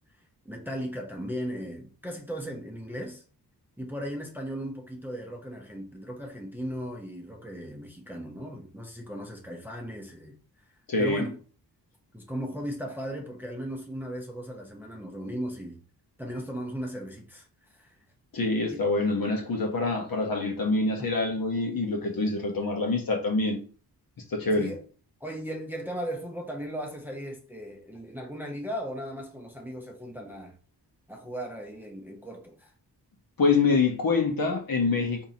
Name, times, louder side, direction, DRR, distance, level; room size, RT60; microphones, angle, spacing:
voice 1, 0.4-3.2 3.8-10.4 11.0-11.4 12.1-15.8 16.2-17.5 17.7-18.0 18.7-18.9 24.5-24.8 25.2-30.6 31.1-32.7, equal, 5° right, 0.7 m, -37 dB
voice 2, 10.9-11.3 18.3-23.6 24.3-24.7 33.4-35.3, left 3 dB, 55° left, 1.1 m, -25 dB
3.7 x 2.8 x 2.8 m
cardioid pair, 65°, 40 cm